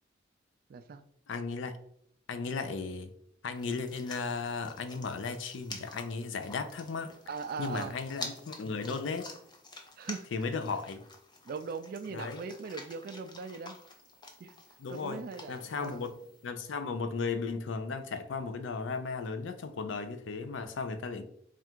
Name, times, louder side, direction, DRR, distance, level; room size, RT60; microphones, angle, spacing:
voice 1, 0.7-1.0 7.3-8.0 10.0-10.6 11.4-13.8 14.4-14.5 14.9-16.1, right 4 dB, 50° right, 10 dB, 0.3 m, -40 dB
voice 2, 1.3-1.7 2.3-3.1 3.4-7.2 7.6-9.3 10.3-11.0 12.1-12.4 14.8-15.2 15.5-16.1 16.4-21.2, left 4 dB, 80° left, 9 dB, 0.5 m, -35 dB
sound 1, 3.5-16.5, left 3 dB, 25° left, 0.5 m, -49 dB
3.5 x 2.4 x 4.4 m, 0.71 s
head